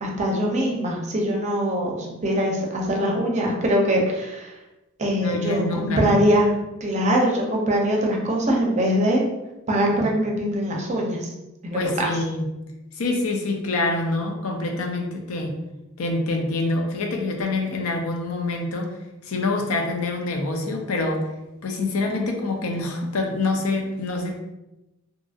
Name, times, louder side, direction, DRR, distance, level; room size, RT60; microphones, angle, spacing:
voice 1, 0.0-4.6 5.0-6.5 6.8-9.2 9.7-11.3 11.6-12.1, equal, 35° right, -1 dB, 0.5 m, -22 dB
voice 2, 5.2-6.2 9.9-10.0 11.7-12.5 12.9-15.6 16.0-18.9 19.2-21.3 21.6-24.3, left 2 dB, 85° left, 2 dB, 0.5 m, -26 dB
2.7 x 2.6 x 2.4 m, 0.98 s
head